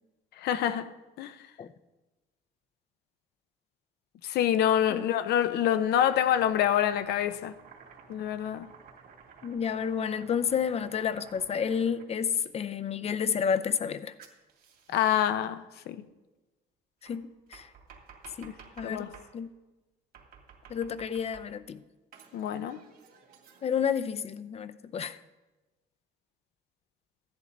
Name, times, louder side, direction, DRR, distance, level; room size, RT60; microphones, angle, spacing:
voice 1, 0.4-1.4 4.2-7.5 8.1-8.7 14.9-16.0 18.8-19.1 22.3-22.8, left 10 dB, 75° left, 0.7 m, -27 dB
Domestic sounds home sounds, 6.1-12.5 14.2-15.3 17.1-19.3 20.1-21.7 22.1-23.9, right 6 dB, 60° right, 2.7 m, -54 dB
voice 2, 9.4-14.1 17.0-17.7 18.4-18.5 18.8-19.5 20.7-21.8 23.6-25.2, left 7 dB, 35° left, 0.6 m, -30 dB
14.5 x 10.5 x 4.0 m
cardioid pair, 110°, 17 cm